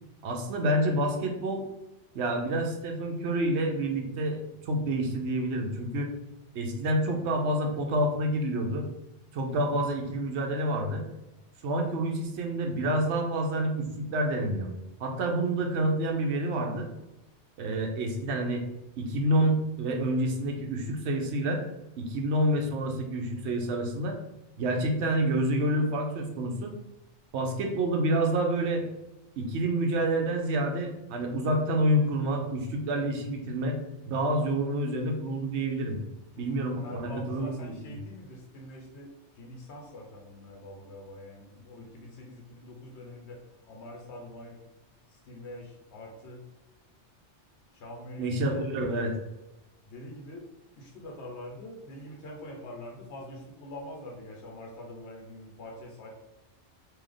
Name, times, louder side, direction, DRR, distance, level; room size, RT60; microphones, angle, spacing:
voice 1, 0.2-1.6 2.1-6.1 6.5-8.9 9.3-11.0 11.6-14.7 15.0-16.9 17.6-18.7 19.0-21.6 22.0-24.2 24.6-26.7 27.3-28.9 29.4-33.8 34.1-36.0 36.4-38.0 48.2-49.1, right 1 dB, 70° right, 2 dB, 0.9 m, -28 dB
voice 2, 36.3-39.1 39.4-44.6 45.3-46.4 47.7-49.1 49.9-50.5 50.8-56.1, left 1 dB, 70° left, 0 dB, 1.1 m, -44 dB
3.2 x 2.8 x 3.8 m, 0.95 s
omnidirectional pair, 1.2 m